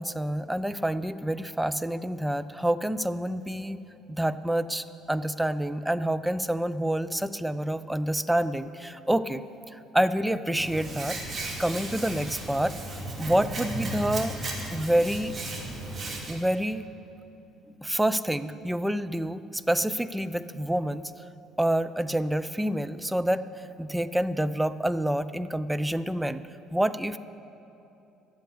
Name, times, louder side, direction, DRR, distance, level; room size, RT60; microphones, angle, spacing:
voice 1, 0.0-3.8 4.1-9.4 9.7-12.7 13.2-15.3 16.3-16.9 17.7-21.1 21.6-26.4 26.7-27.2, right 1 dB, 5° right, 12 dB, 0.5 m, -28 dB
Hands, 10.5-16.3, right 2 dB, 30° right, 2.9 m, -35 dB
11.5 x 7.9 x 9.7 m, 2.8 s
figure-of-eight pair, 55°, 0 cm